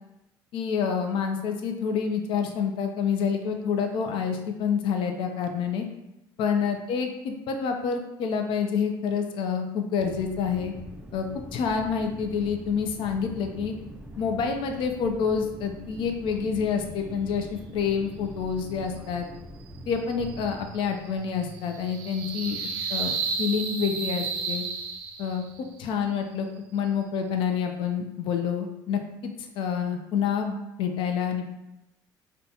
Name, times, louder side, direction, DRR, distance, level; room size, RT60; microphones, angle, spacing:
voice 1, 0.5-5.9 6.4-10.7 11.1-13.7 14.2-19.3 19.9-22.6 22.9-24.7 25.2-25.4 25.8-26.5 26.7-31.5, left 6 dB, 65° left, 4 dB, 0.5 m, -28 dB
sound 1, 10.0-20.7, equal, 10° right, 0.3 m, -43 dB
sound 2, 19.6-25.6, right 5 dB, 80° right, 0.4 m, -33 dB
3.9 x 2.2 x 2.7 m, 0.93 s
cardioid pair, 100°, 9 cm